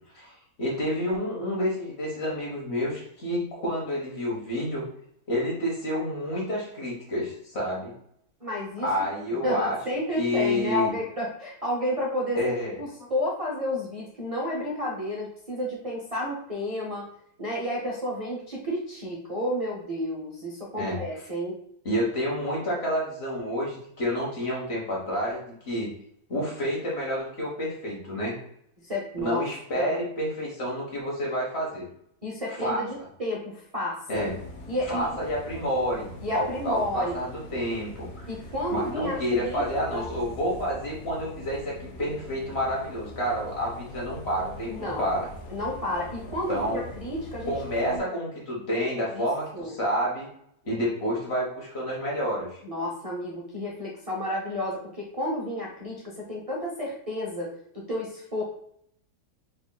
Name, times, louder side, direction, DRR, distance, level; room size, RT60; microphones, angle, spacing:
voice 1, 0.1-4.8 5.3-7.9 8.8-9.7 10.2-10.9 12.3-13.1 20.8-21.0 21.8-25.9 26.3-28.4 29.2-31.9 32.6-32.8 34.1-34.3 34.9-38.3 38.7-45.3 46.5-46.9 47.5-50.3 50.6-52.6, equal, 45° left, -4 dB, 1.4 m, -29 dB
voice 2, 8.4-8.9 9.3-12.4 12.8-17.1 17.4-21.6 28.8-29.4 29.7-29.9 32.2-34.3 34.7-35.1 36.2-37.2 38.3-39.6 39.9-40.1 44.7-45.1 45.5-48.1 49.1-49.3 49.5-49.7 52.6-58.4, left 1 dB, 35° right, -4 dB, 0.6 m, -31 dB
Bus, 34.1-48.0, left 1 dB, 70° left, 1.1 m, -42 dB
4.9 x 2.9 x 2.2 m, 0.71 s
omnidirectional pair, 1.7 m